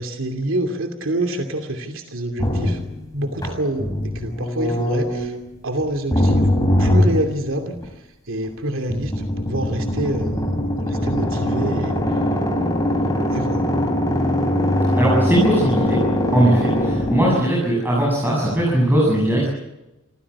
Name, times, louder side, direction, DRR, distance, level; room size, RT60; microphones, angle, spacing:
voice 1, 0.0-2.8 3.1-5.4 5.6-6.5 6.8-12.2 13.3-13.7, right 1 dB, 75° right, 6 dB, 2.7 m, -27 dB
sound 1, 2.4-5.4 6.1-7.9 8.9-17.4, left 1 dB, 20° left, 3.5 m, -21 dB
voice 2, 14.9-16.0 16.3-19.5, right 1 dB, 10° right, -5 dB, 7.6 m, -19 dB
26.0 x 16.0 x 8.5 m, 0.94 s
head